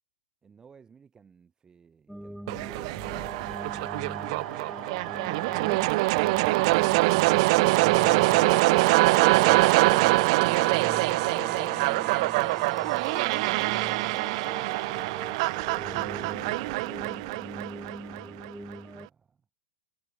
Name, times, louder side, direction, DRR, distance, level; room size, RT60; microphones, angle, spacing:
voice 1, 0.4-4.4 17.0-18.5 18.8-19.4, right 6 dB, 15° right, 4.4 m, -55 dB
sound 1, 2.1-19.1, equal, ahead, 1.0 m, -41 dB
sound 2, 2.5-18.5, right 24 dB, 50° right, 0.5 m, -24 dB
hypercardioid pair, 120°, 4 cm